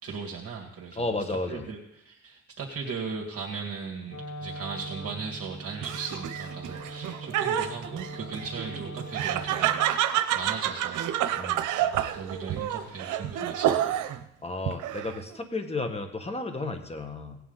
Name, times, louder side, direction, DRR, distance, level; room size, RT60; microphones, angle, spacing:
voice 1, 0.0-1.1 1.5-11.5 11.8-14.0, right 5 dB, 50° right, 0 dB, 1.9 m, -38 dB
voice 2, 0.9-1.7 11.3-11.7 14.4-17.4, left 2 dB, 20° left, 6 dB, 1.7 m, -33 dB
Wind instrument woodwind instrument, 4.0-10.1, right 2 dB, 55° left, 2.4 m, -41 dB
Laughter, 5.8-14.2 14.7-15.3, right 11 dB, 85° right, 0.8 m, -29 dB
17.5 x 9.1 x 4.0 m, 0.81 s
cardioid pair, 90°, 30 cm